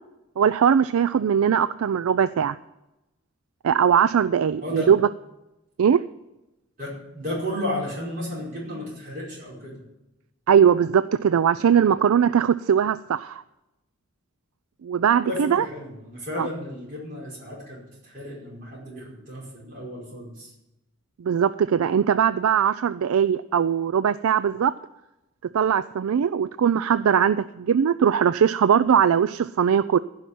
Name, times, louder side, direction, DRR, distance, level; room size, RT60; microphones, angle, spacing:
voice 1, 0.4-2.6 3.6-5.0 5.8-6.0 10.5-13.4 14.8-15.7 16.4-16.5 21.2-24.7 25.5-30.0, right 8 dB, 90° right, 15 dB, 0.4 m, -20 dB
voice 2, 6.8-9.8 15.2-20.5, left 1 dB, 40° right, -6 dB, 5.2 m, -33 dB
15.0 x 5.8 x 9.2 m, 0.94 s
head